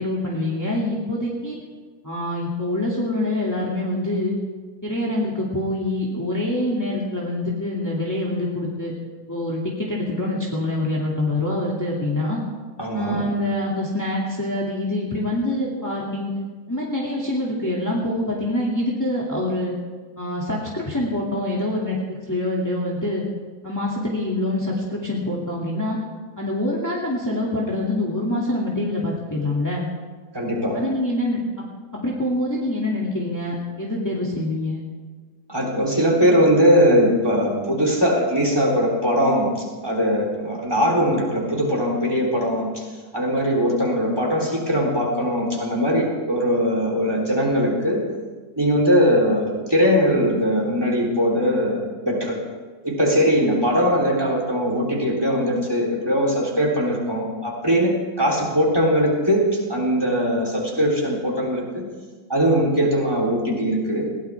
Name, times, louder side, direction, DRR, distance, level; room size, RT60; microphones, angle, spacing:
voice 1, 0.0-1.6 2.0-4.4 4.8-8.9 9.3-12.4 12.9-16.3 16.7-19.7 20.2-23.2 23.6-26.0 26.4-29.9 30.7-31.6 32.0-34.8, left 1 dB, 10° left, -5 dB, 2.3 m, -25 dB
voice 2, 12.8-13.3 30.3-30.8 35.5-42.9 43.1-48.1 48.6-52.4 52.8-61.8 62.3-64.1, equal, 15° right, -1 dB, 3.5 m, -20 dB
21.0 x 17.5 x 3.5 m, 1.4 s
omnidirectional pair, 1.7 m